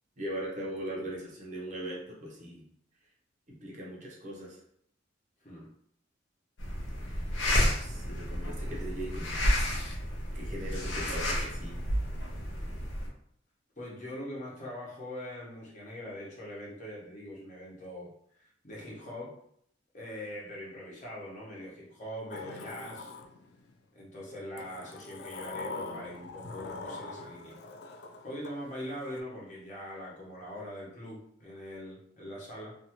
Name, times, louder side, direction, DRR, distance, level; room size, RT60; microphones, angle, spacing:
voice 1, 0.2-2.6 3.5-4.6 7.1-9.4 10.3-11.8, right 1 dB, 40° right, -3 dB, 0.7 m, -40 dB
sound 1, 6.6-13.1, equal, 85° left, 0.7 m, -31 dB
voice 2, 13.8-19.3 19.9-23.1 23.9-27.6 27.9-32.8, equal, 40° left, -5 dB, 0.9 m, -42 dB
Sliding door, 22.3-23.8 24.6-29.2, left 3 dB, 60° left, 0.3 m, -43 dB
2.6 x 2.3 x 2.9 m, 0.68 s
head